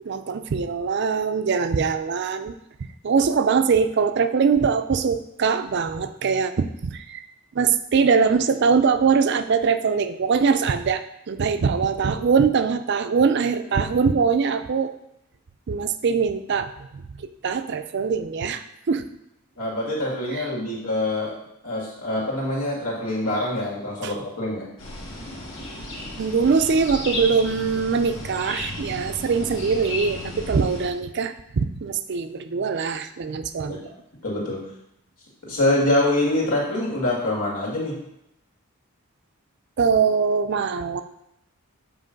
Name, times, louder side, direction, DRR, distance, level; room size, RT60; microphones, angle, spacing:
voice 1, 0.1-2.5 3.0-7.2 7.5-14.9 15.7-19.0 20.3-20.4 24.0-24.1 26.2-33.9 39.8-41.0, right 5 dB, 50° right, 10 dB, 0.4 m, -22 dB
voice 2, 19.6-21.3 21.6-24.7 33.7-33.8 34.2-34.6 35.4-38.0, left 1 dB, 85° left, -4 dB, 2.4 m, -25 dB
sound 1, 24.8-30.9, left 1 dB, 60° left, 1.8 m, -34 dB
7.5 x 3.2 x 5.2 m, 0.80 s
head